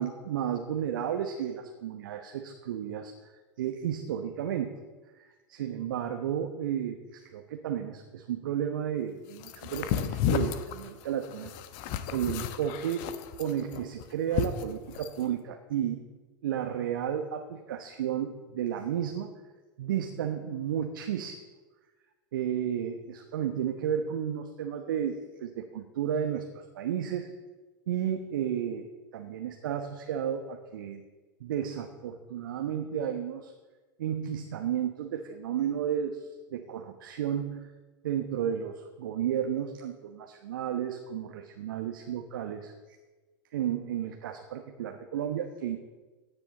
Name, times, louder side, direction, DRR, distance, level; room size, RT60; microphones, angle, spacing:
voice 1, 0.0-3.3 3.6-4.8 5.1-11.5 12.1-13.1 13.4-16.0 16.4-19.3 19.8-21.4 22.3-27.3 27.9-28.9 29.1-31.0 31.4-33.5 34.0-37.7 38.0-42.7 43.5-45.8, right 9 dB, 60° right, 5 dB, 1.1 m, -32 dB
sound 1, 9.4-15.2, left 9 dB, 45° left, 1.0 m, -32 dB
16.5 x 9.6 x 4.1 m, 1.3 s
figure-of-eight pair, 90°, 12 cm